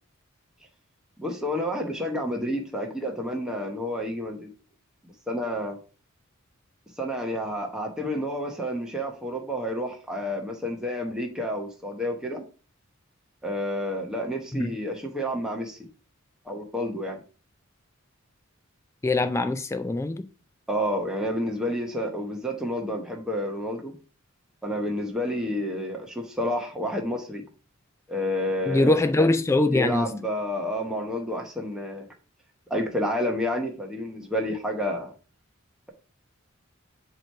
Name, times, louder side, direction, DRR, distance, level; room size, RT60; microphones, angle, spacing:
voice 1, 1.2-4.5 5.3-5.8 7.0-12.5 13.4-15.8 16.4-17.2 20.7-23.9 24.6-27.4 28.1-29.0 29.7-32.1 32.7-35.1, equal, 5° right, 0.9 m, -29 dB
voice 2, 19.0-20.2 28.7-30.1, left 2 dB, 15° left, 0.3 m, -22 dB
7.7 x 3.0 x 4.4 m
head